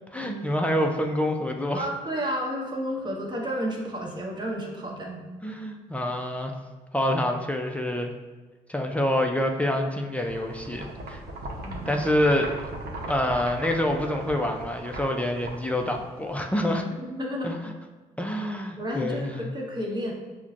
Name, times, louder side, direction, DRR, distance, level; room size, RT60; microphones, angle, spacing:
voice 1, 0.1-1.9 5.4-6.5 6.9-8.1 8.7-11.2 11.9-12.7 13.1-16.8 17.4-17.7 18.2-19.4, left 1 dB, 10° left, 2 dB, 0.4 m, -27 dB
voice 2, 1.7-5.2 11.6-12.0 17.0-17.6 18.8-20.1, equal, 25° right, -2 dB, 1.1 m, -31 dB
sound 1, 10.3-16.4, right 1 dB, 65° right, 0.8 m, -38 dB
5.7 x 2.2 x 2.5 m, 1.3 s
hypercardioid pair, 55°, 17 cm